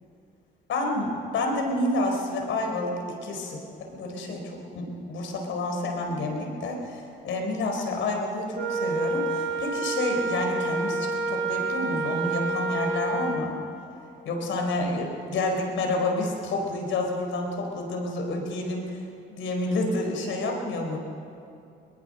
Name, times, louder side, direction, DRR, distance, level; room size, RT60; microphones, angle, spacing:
voice 1, 0.7-2.9 3.2-3.6 3.9-13.5 14.2-21.0, left 2 dB, 80° left, 2 dB, 4.3 m, -29 dB
Wind instrument woodwind instrument, 8.5-13.4, right 3 dB, 65° right, 4.0 m, -28 dB
22.0 x 20.0 x 6.6 m, 2.5 s
cardioid pair, 90°, 20 cm